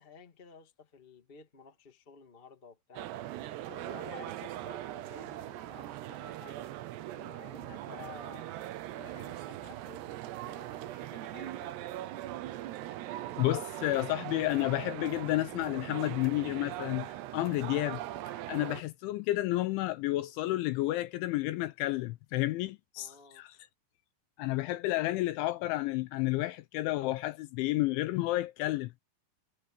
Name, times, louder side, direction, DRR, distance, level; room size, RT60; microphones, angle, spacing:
voice 1, 0.0-3.1 3.7-6.7 7.0-8.5 9.0-11.8 22.9-23.4, left 5 dB, 50° left, 0.6 m, -52 dB
sound 1, 3.0-18.8, right 14 dB, 75° right, 2.6 m, -40 dB
voice 2, 13.4-18.0 18.3-23.6 24.4-28.9, left 17 dB, 80° left, 2.8 m, -31 dB
omnidirectional pair, 6.0 m